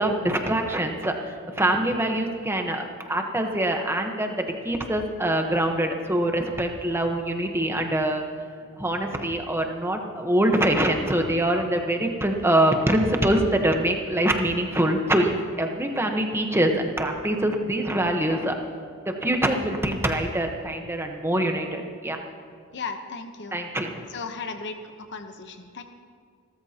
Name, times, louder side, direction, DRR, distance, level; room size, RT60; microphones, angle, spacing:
voice 1, 0.0-8.2 8.8-18.5 19.0-22.2 23.5-24.1, right 1 dB, 10° right, 3 dB, 1.1 m, -24 dB
voice 2, 22.7-23.6 24.1-25.8, left 4 dB, 55° left, 6 dB, 1.0 m, -36 dB
29.0 x 13.5 x 2.9 m, 2.2 s
head